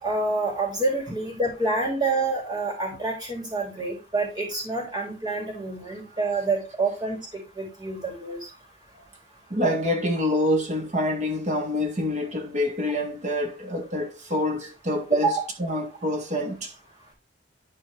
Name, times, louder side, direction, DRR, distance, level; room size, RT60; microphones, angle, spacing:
voice 1, 0.0-8.4 15.2-15.4, right 3 dB, 25° right, 3.3 m, -27 dB
voice 2, 9.5-15.3 15.6-16.7, left 1 dB, 40° right, 1.9 m, -26 dB
11.5 x 4.4 x 3.3 m
head